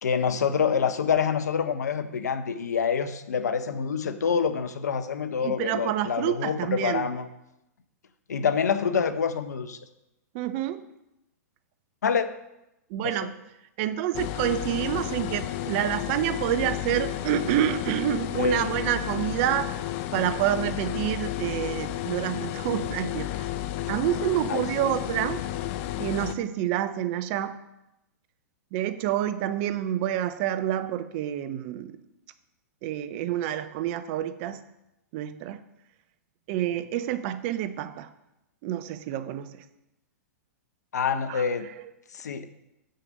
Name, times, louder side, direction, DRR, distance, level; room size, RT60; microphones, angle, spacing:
voice 1, 0.0-7.3 8.3-9.8 12.0-12.3 13.0-13.3 18.4-18.7 24.5-24.7 40.9-41.7 42.1-42.5, left 6 dB, 80° left, 11 dB, 0.7 m, -26 dB
voice 2, 5.4-7.1 10.3-10.8 12.9-13.4 13.8-19.7 20.1-23.5 23.9-25.4 26.0-27.6 28.7-31.9 32.8-34.6 35.1-35.6 36.5-38.1 38.6-39.6 41.3-41.5, right 12 dB, 45° right, 13 dB, 0.7 m, -28 dB
sound 1, 14.1-26.4, left 13 dB, 45° left, 0.6 m, -32 dB
7.5 x 6.5 x 5.3 m, 0.89 s
hypercardioid pair, 120°, 9 cm